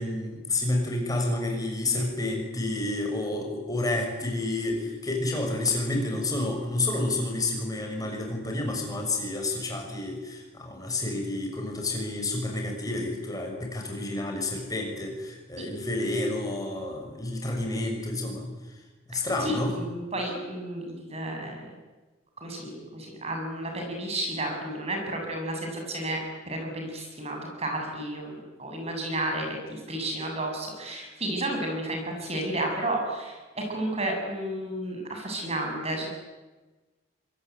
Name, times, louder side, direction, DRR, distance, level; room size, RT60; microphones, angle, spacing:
voice 1, 0.0-18.5 19.1-19.7, left 2 dB, 20° left, 2 dB, 6.3 m, -29 dB
voice 2, 19.1-21.7 22.4-26.2 26.5-36.1, right 1 dB, 30° right, 2 dB, 7.3 m, -32 dB
25.0 x 21.5 x 9.4 m, 1.2 s
head